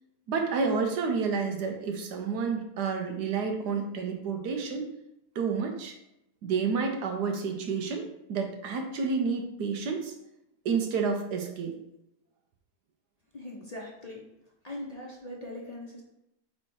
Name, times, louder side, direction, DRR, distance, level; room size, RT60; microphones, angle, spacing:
voice 1, 0.3-4.8 5.3-5.9 6.4-10.1 10.6-11.7, right 5 dB, 80° right, 4 dB, 1.5 m, -30 dB
voice 2, 13.3-14.2 14.6-16.0, left 1 dB, 30° left, -3 dB, 0.8 m, -40 dB
5.0 x 4.4 x 4.6 m, 0.85 s
omnidirectional pair, 1.7 m